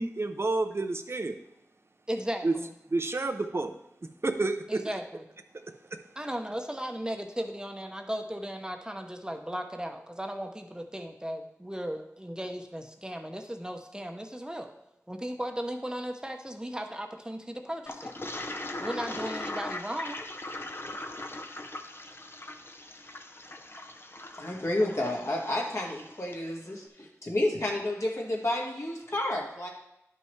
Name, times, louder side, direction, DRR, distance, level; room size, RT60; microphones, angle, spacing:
voice 1, 0.0-1.4 2.4-2.5 2.9-3.7 4.2-4.8 5.9-6.0, right 2 dB, 50° right, 7 dB, 0.6 m, -29 dB
voice 2, 2.1-2.7 4.7-5.2 6.2-14.7 15.1-18.1 18.8-20.2, equal, 15° right, 4 dB, 0.8 m, -36 dB
Toilet flush, 17.9-26.4, left 2 dB, 45° left, 0.7 m, -40 dB
voice 3, 24.4-29.7, left 1 dB, 60° left, -2 dB, 1.9 m, -30 dB
11.0 x 5.5 x 3.2 m, 0.82 s
wide cardioid pair, 50°, 5 cm